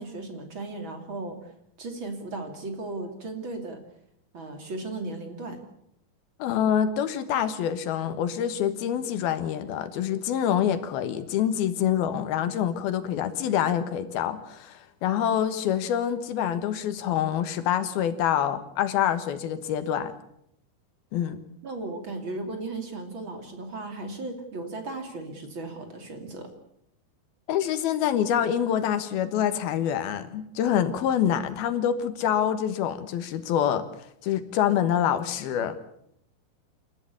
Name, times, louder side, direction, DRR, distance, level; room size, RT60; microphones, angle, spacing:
voice 1, 0.0-1.4 1.8-3.8 4.3-5.6 21.6-26.5, right 2 dB, 35° right, 5 dB, 3.2 m, -36 dB
voice 2, 6.4-20.2 21.1-21.4 27.5-33.9 34.2-35.8, left 9 dB, 85° left, 11 dB, 3.3 m, -26 dB
28.5 x 13.5 x 8.5 m, 0.74 s
omnidirectional pair, 4.3 m